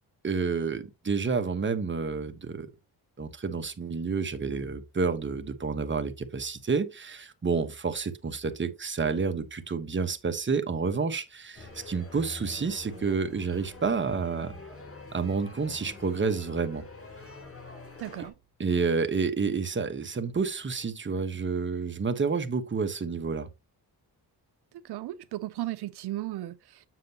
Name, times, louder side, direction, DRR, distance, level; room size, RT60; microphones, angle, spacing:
voice 1, 0.2-2.7 3.2-14.5 15.1-16.8 18.6-23.5, right 5 dB, 30° right, 1.1 m, -29 dB
sound 1, 11.5-18.3, left 2 dB, 35° left, 4.7 m, -45 dB
voice 2, 18.0-18.3 24.7-26.9, right 15 dB, 80° right, 0.5 m, -36 dB
7.7 x 6.7 x 2.8 m
cardioid pair, 95°, 39 cm